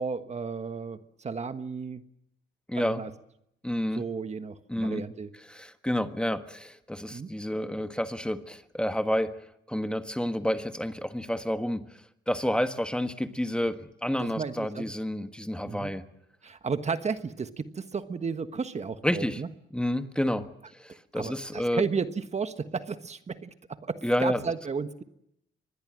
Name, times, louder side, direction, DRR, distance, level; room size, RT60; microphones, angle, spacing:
voice 1, 0.0-2.0 2.8-3.1 4.0-5.3 7.1-7.3 14.2-14.9 15.6-15.9 16.4-19.5 21.1-25.0, right 5 dB, 35° right, 10 dB, 1.4 m, -33 dB
voice 2, 2.7-3.0 3.6-4.0 4.7-5.0 5.5-9.3 9.7-11.8 12.3-16.0 19.0-19.4 19.7-20.5 20.8-21.8 24.0-24.4, equal, 5° left, 8 dB, 1.5 m, -29 dB
24.5 x 20.5 x 7.7 m, 0.78 s
cardioid pair, 90°, 20 cm